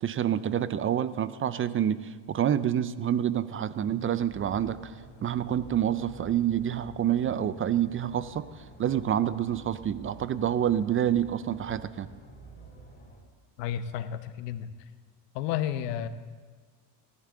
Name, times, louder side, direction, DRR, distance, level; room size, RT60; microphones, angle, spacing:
voice 1, 0.0-2.0 2.3-4.9 5.2-8.5 8.8-12.1, right 10 dB, 30° right, 15 dB, 0.4 m, -27 dB
sound 1, 4.2-13.2, right 2 dB, 20° left, 4.2 m, -49 dB
voice 2, 13.6-14.7 15.3-16.1, left 10 dB, 90° left, 12 dB, 0.9 m, -31 dB
19.5 x 11.0 x 3.8 m, 1.5 s
supercardioid pair, 100°, 46 cm